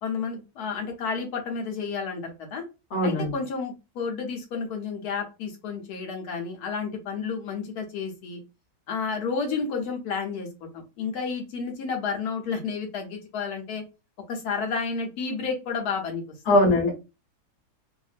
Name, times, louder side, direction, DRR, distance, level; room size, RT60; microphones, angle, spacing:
voice 1, 0.0-2.6 3.0-8.4 8.9-13.8 14.3-16.2 16.5-16.6, left 5 dB, 80° left, 1.2 m, -31 dB
voice 2, 2.9-3.3 16.5-16.9, left 1 dB, 35° left, 1.0 m, -20 dB
2.8 x 2.5 x 2.4 m
omnidirectional pair, 1.7 m